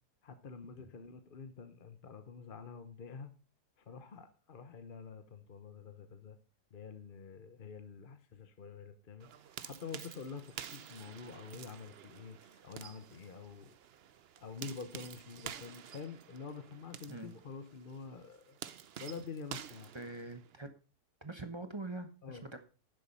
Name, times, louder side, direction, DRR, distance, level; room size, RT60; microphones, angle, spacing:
voice 1, 0.2-3.3 3.8-6.4 6.7-9.3 9.6-13.7 14.4-18.6 19.0-19.9 22.2-22.4, left 5 dB, 40° left, 9 dB, 0.9 m, -47 dB
sound 1, 9.2-20.7, right 9 dB, 55° right, 0.7 m, -50 dB
voice 2, 19.9-20.7 21.2-22.6, right 2 dB, 20° right, 7 dB, 1.0 m, -44 dB
10.5 x 7.1 x 5.4 m, 0.35 s
omnidirectional pair, 1.7 m